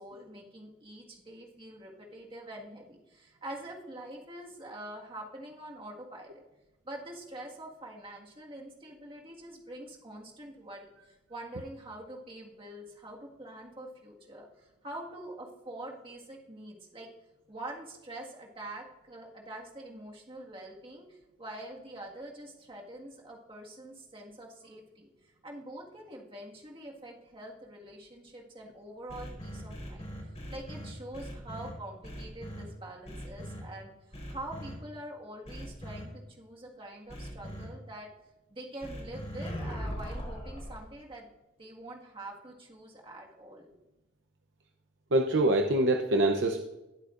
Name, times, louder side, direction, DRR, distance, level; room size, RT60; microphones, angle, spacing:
voice 1, 0.0-6.4 6.9-17.1 17.5-30.1 30.5-38.1 38.5-41.3 41.6-43.7, right 1 dB, 25° right, -1 dB, 1.8 m, -45 dB
sound 1, 29.1-31.7 32.0-32.6 33.0-33.6 34.1-34.7 35.4-36.0 37.1-37.6 38.8-40.8, equal, 35° left, 4.2 m, -40 dB
voice 2, 45.1-46.6, right 2 dB, 70° right, 4 dB, 0.7 m, -24 dB
19.0 x 8.2 x 2.5 m, 1.0 s
head